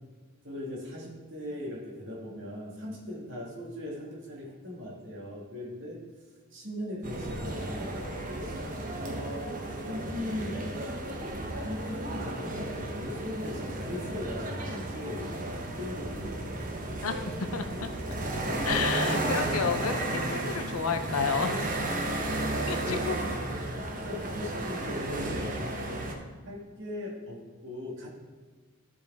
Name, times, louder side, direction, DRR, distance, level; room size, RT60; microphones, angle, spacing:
voice 1, 0.4-6.0 6.5-7.9 8.9-9.5 9.9-10.7 11.6-16.7 22.6-23.3 23.8-25.7 26.4-28.1, left 1 dB, 60° right, -3 dB, 2.0 m, -39 dB
sound 1, 7.0-26.1, right 1 dB, 40° right, 0.9 m, -33 dB
voice 2, 17.0-17.9 18.6-21.6 22.7-23.1, left 5 dB, 85° left, 8 dB, 0.7 m, -31 dB
14.0 x 4.8 x 3.6 m, 1.4 s
head